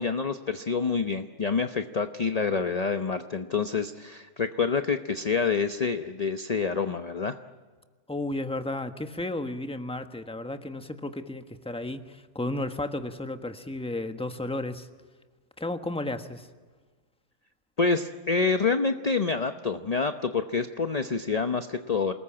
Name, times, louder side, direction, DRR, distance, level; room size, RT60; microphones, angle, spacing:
voice 1, 0.0-7.4 17.8-22.1, left 4 dB, 35° left, 8 dB, 0.8 m, -27 dB
voice 2, 8.1-14.9 15.6-16.5, left 2 dB, 5° left, 7 dB, 1.2 m, -33 dB
28.0 x 20.0 x 8.8 m, 1.4 s
omnidirectional pair, 1.6 m